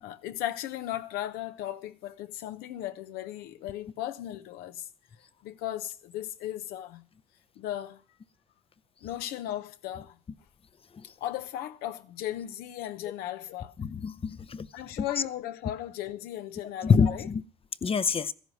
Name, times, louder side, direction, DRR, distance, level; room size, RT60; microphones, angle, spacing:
voice 1, 0.0-4.9 5.4-7.0 7.6-8.0 9.0-10.2 11.2-13.7 14.7-17.3, left 12 dB, 80° left, 0.9 m, -36 dB
voice 2, 13.8-14.7 16.8-17.4 17.8-18.3, left 6 dB, 35° left, 0.7 m, -25 dB
14.0 x 10.5 x 6.3 m
supercardioid pair, 65°, 16 cm